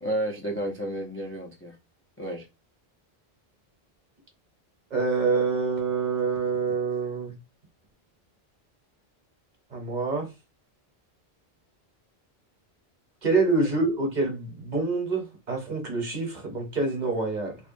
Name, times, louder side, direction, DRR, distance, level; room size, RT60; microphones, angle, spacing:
voice 1, 0.0-1.7 2.2-2.5, right 1 dB, 20° left, 0.3 m, -31 dB
voice 2, 4.9-7.4 9.7-10.3 13.2-17.6, right 3 dB, 50° right, 0.9 m, -26 dB
2.9 x 2.1 x 2.5 m
omnidirectional pair, 1.0 m